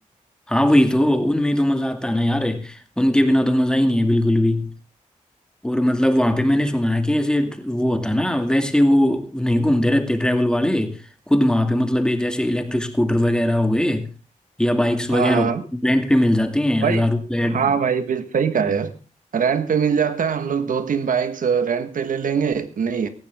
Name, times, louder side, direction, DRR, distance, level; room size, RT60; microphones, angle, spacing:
voice 1, 0.5-4.7 5.6-11.0 11.3-14.1 14.6-15.5 15.8-17.8, left 1 dB, 5° left, 2.3 m, -20 dB
voice 2, 15.1-15.6 16.8-17.1 17.4-18.9 19.3-23.1, right 6 dB, 85° right, 1.5 m, -22 dB
18.0 x 15.0 x 3.6 m
wide cardioid pair, 95°, 13 cm